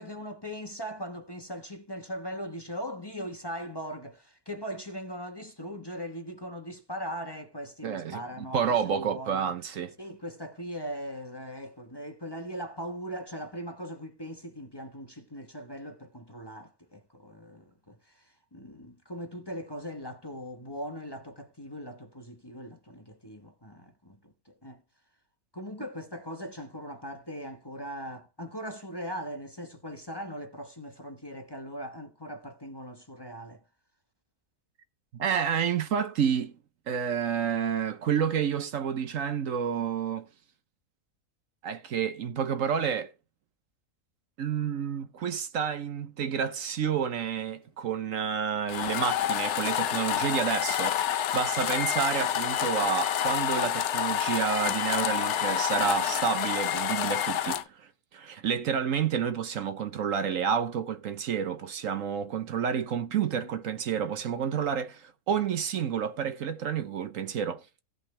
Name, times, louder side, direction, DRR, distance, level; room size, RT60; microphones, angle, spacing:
voice 1, 0.0-9.6 10.0-24.8 25.5-33.6 63.3-63.5, equal, 20° left, 1.1 m, -40 dB
voice 2, 7.8-9.9 35.1-36.5 36.9-40.3 41.6-43.1 44.4-67.6, right 7 dB, 65° right, 1.2 m, -29 dB
sound 1, 48.7-57.6, left 10 dB, 60° left, 0.9 m, -28 dB
16.5 x 5.8 x 3.2 m
omnidirectional pair, 1.5 m